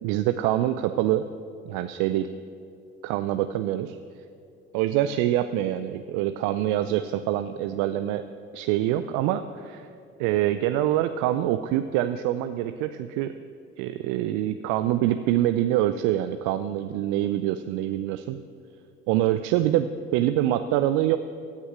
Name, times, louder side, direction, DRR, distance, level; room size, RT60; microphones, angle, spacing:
voice 1, 0.0-1.3 1.7-2.3 3.0-4.0 4.7-8.2 8.5-9.9 10.2-13.3 13.8-18.4 19.1-21.2, right 13 dB, 65° right, 11 dB, 0.5 m, -25 dB
15.0 x 6.2 x 6.2 m, 2.5 s
hypercardioid pair, 55°, 32 cm